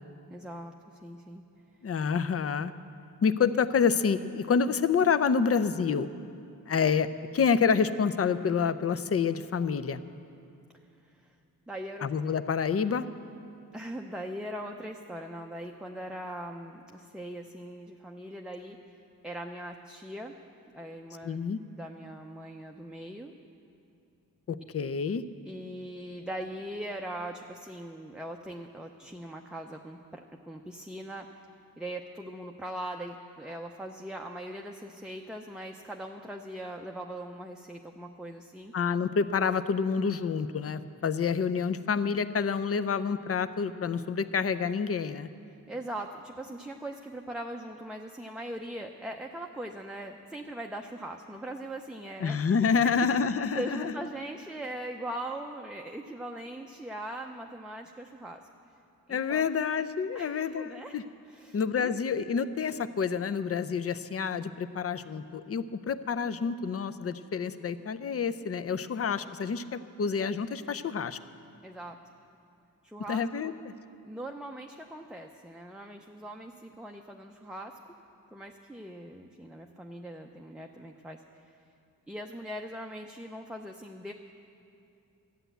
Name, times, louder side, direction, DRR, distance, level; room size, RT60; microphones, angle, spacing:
voice 1, 0.3-1.4 11.0-11.3 11.7-12.1 13.7-19.0 19.2-20.4 20.7-21.4 21.7-23.3 25.4-31.5 31.8-38.7 45.7-52.5 52.8-58.4 59.1-59.5 60.1-61.9 70.7-70.8 71.6-72.0 72.8-73.5 74.0-77.8 78.3-81.5 82.1-84.1, right 1 dB, ahead, 2 dB, 0.5 m, -40 dB
voice 2, 1.8-2.7 3.2-6.1 6.7-7.1 7.3-10.0 12.0-13.1 21.2-21.6 24.5-25.2 38.7-45.3 52.2-53.9 59.1-61.0 61.5-71.2 73.1-73.7, left 6 dB, 45° left, 13 dB, 0.5 m, -28 dB
13.0 x 9.1 x 8.0 m, 2.6 s
wide cardioid pair, 95°, 35 cm